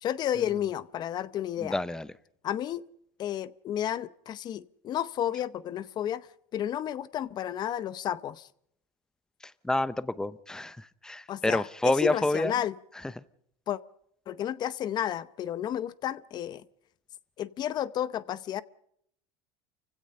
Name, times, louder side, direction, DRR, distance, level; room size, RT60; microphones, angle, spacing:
voice 1, 0.0-1.8 2.4-2.8 3.2-6.3 6.5-8.5 11.3-12.7 13.7-13.8 14.3-16.6 17.4-18.6, left 11 dB, 40° left, 0.7 m, -32 dB
voice 2, 1.6-2.1 9.6-12.5 13.2-13.3, left 2 dB, 5° left, 0.7 m, -28 dB
29.0 x 16.5 x 5.5 m
cardioid pair, 135°, 11 cm